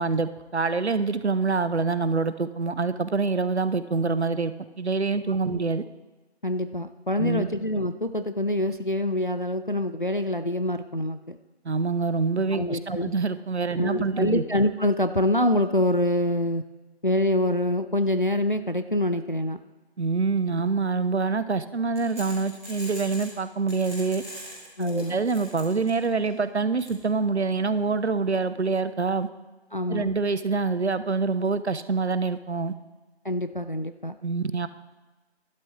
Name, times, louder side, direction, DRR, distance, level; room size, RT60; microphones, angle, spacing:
voice 1, 0.0-5.8 7.2-7.5 11.6-14.4 20.0-24.2 24.8-29.3 29.9-32.7 34.2-34.7, right 4 dB, 75° right, 14 dB, 0.7 m, -26 dB
voice 2, 6.4-11.4 12.5-13.1 13.8-16.6 17.0-19.6 24.8-25.2 29.7-30.1 33.2-34.2, left 1 dB, 50° left, 9 dB, 0.4 m, -25 dB
sound 1, 22.0-23.3 23.7-26.3 26.8-26.9, equal, 15° right, 2.6 m, -41 dB
12.0 x 11.5 x 3.2 m, 1.2 s
figure-of-eight pair, 175°, 33 cm